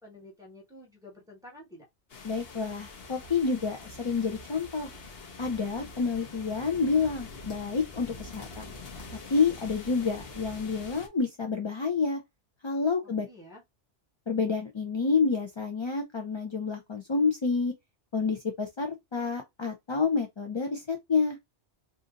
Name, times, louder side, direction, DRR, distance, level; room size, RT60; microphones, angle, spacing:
voice 1, 0.0-1.9 13.0-13.6, left 1 dB, 5° right, 1.4 m, -50 dB
sound 1, 2.1-11.1, left 3 dB, 60° left, 1.0 m, -45 dB
voice 2, 2.2-4.9 5.4-8.7 9.3-12.2 12.6-13.3 14.3-17.7 18.1-21.4, left 4 dB, 40° left, 0.4 m, -28 dB
2.7 x 2.5 x 3.8 m
omnidirectional pair, 1.2 m